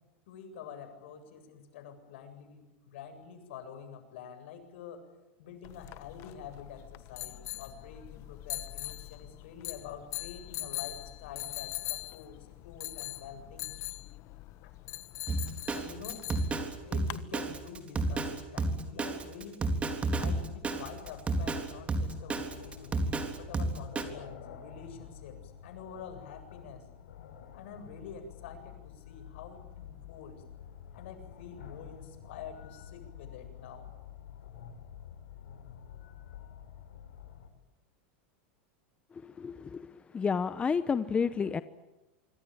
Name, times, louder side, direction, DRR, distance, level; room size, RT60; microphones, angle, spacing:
voice 1, 0.3-5.0 5.4-13.7 15.7-16.3 16.9-19.7 20.2-26.9 27.5-30.4 30.9-33.9, left 7 dB, 75° left, 7 dB, 7.9 m, -47 dB
sound 1, 5.6-17.2, left 18 dB, 45° left, 1.4 m, -42 dB
Drum kit, 15.3-24.0, right 2 dB, 20° right, 3.6 m, -31 dB
sound 2, 20.3-37.5, left 9 dB, 90° left, 6.6 m, -49 dB
voice 2, 39.2-41.6, left 6 dB, 15° left, 13 dB, 0.9 m, -31 dB
26.5 x 24.5 x 8.9 m, 1.1 s
supercardioid pair, 135°, 7 cm